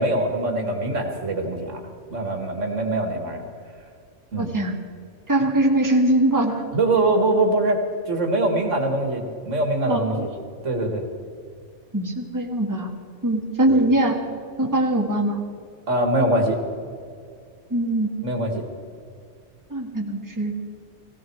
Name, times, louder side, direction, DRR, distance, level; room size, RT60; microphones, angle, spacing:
voice 1, 0.0-3.4 4.3-4.5 6.7-10.3 10.6-11.0 13.7-13.8 15.9-16.6 18.2-18.7, right 2 dB, 75° right, 4 dB, 2.3 m, -23 dB
voice 2, 4.4-4.8 5.3-6.6 9.9-10.2 11.9-12.9 13.2-14.2 14.6-15.4 17.7-18.1 19.7-20.5, right 1 dB, 15° right, 0 dB, 1.8 m, -22 dB
17.5 x 17.5 x 4.7 m, 2.3 s
omnidirectional pair, 1.3 m